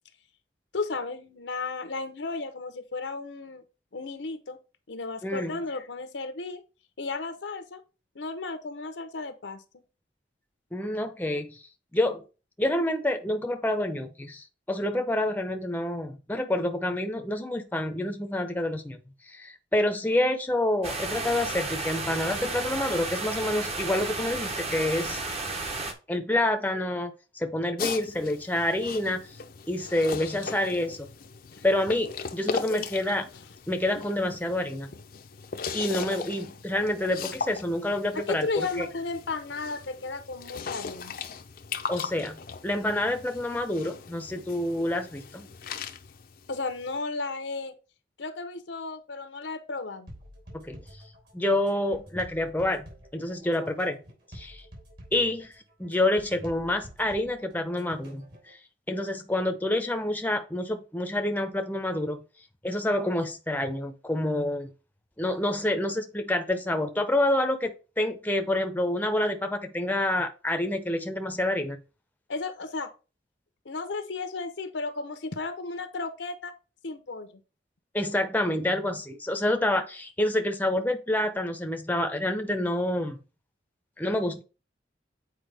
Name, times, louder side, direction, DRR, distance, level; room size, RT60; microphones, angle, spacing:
voice 1, 0.7-3.6 3.9-4.6 4.9-6.6 7.0-7.8 8.1-9.6 31.6-31.7 32.7-32.8 38.1-41.1 46.5-47.7 48.2-50.1 72.3-72.9 73.6-76.5 76.8-77.4, left 3 dB, 85° left, 0.8 m, -34 dB
voice 2, 5.2-5.6 10.7-11.6 11.9-12.2 12.6-19.0 19.3-25.2 26.1-29.2 29.7-31.1 31.6-33.2 33.7-34.9 35.7-38.9 41.9-45.5 50.5-50.8 51.3-54.0 54.3-54.6 55.1-55.5 55.8-58.6 58.9-62.2 62.6-64.7 65.2-71.8 77.9-83.2 84.0-84.4, left 1 dB, 10° left, 0.6 m, -28 dB
sound 1, 20.8-25.9, right 3 dB, 35° right, 0.9 m, -33 dB
sound 2, 27.8-47.0, left 5 dB, 55° left, 0.5 m, -39 dB
sound 3, 50.1-58.5, equal, 60° right, 3.3 m, -48 dB
7.8 x 4.6 x 3.4 m
head